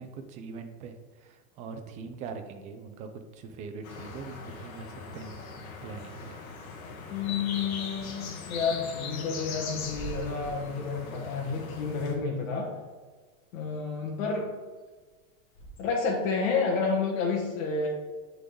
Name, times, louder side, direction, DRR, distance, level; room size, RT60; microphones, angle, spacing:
voice 1, 0.0-5.4 5.8-6.4, right 5 dB, 20° right, 6 dB, 0.3 m, -42 dB
sound 1, 3.8-12.2, left 5 dB, 80° left, 1.4 m, -40 dB
voice 2, 7.1-12.7 13.5-14.5 15.8-17.9, left 4 dB, 65° left, -2 dB, 1.3 m, -30 dB
Bird / Wind, 9.5-16.2, right 3 dB, 30° left, 1.6 m, -48 dB
9.6 x 4.0 x 3.7 m, 1.4 s
supercardioid pair, 140°, 41 cm